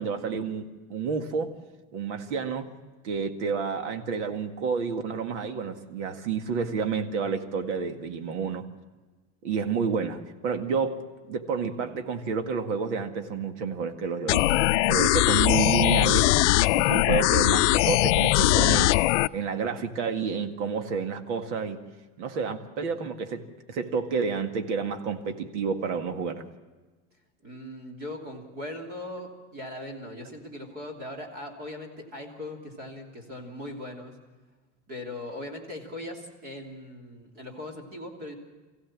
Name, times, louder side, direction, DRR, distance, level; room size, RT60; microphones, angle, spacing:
voice 1, 0.0-1.5 1.9-2.7 3.0-8.7 9.4-16.3 16.7-18.9 19.3-21.8 22.2-26.4, right 5 dB, 70° right, 7 dB, 2.0 m, -30 dB
sound 1, 14.3-19.3, left 17 dB, 70° left, 0.5 m, -21 dB
voice 2, 27.4-34.2 34.9-38.4, left 1 dB, 25° right, 1 dB, 3.0 m, -39 dB
24.5 x 16.0 x 7.4 m, 1.3 s
supercardioid pair, 175°, 37 cm